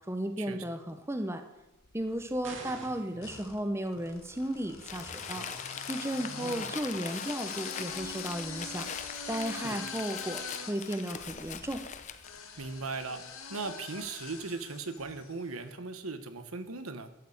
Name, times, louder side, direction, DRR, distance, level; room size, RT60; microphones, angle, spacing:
voice 1, 0.1-1.4 1.9-5.5 5.9-8.9 9.2-11.8, right 1 dB, 10° right, 7 dB, 0.8 m, -34 dB
sound 1, 1.8-2.5 3.2-15.5, left 5 dB, 85° left, 2.0 m, -43 dB
sound 2, 2.4-3.2, right 3 dB, 70° right, 2.3 m, -45 dB
voice 2, 2.6-3.3 6.3-6.7 9.5-9.8 12.6-13.2 13.5-17.1, right 3 dB, 90° right, 9 dB, 1.2 m, -39 dB
Crumpling crinkling, 4.8-12.4, left 7 dB, 35° left, 0.7 m, -42 dB
12.5 x 6.7 x 8.6 m, 0.94 s
head